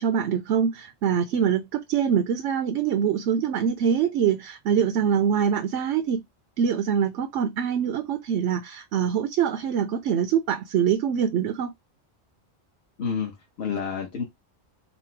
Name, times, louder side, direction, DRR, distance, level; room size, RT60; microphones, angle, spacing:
voice 1, 0.0-6.2 6.6-11.7, right 8 dB, 75° right, 0.9 m, -24 dB
voice 2, 13.0-14.2, left 6 dB, 60° left, 1.2 m, -29 dB
4.2 x 2.0 x 4.4 m
omnidirectional pair, 1.2 m